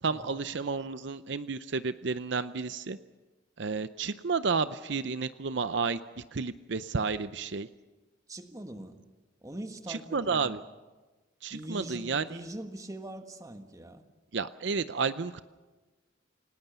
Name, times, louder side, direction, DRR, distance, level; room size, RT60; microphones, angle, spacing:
voice 1, 0.0-3.0 3.6-7.7 9.9-10.6 11.4-12.2 14.3-15.4, right 4 dB, 65° right, 13 dB, 0.6 m, -31 dB
voice 2, 8.3-9.0 9.4-10.6 11.5-14.0, right 1 dB, 20° right, 7 dB, 1.5 m, -42 dB
28.5 x 18.5 x 6.9 m, 1.2 s
head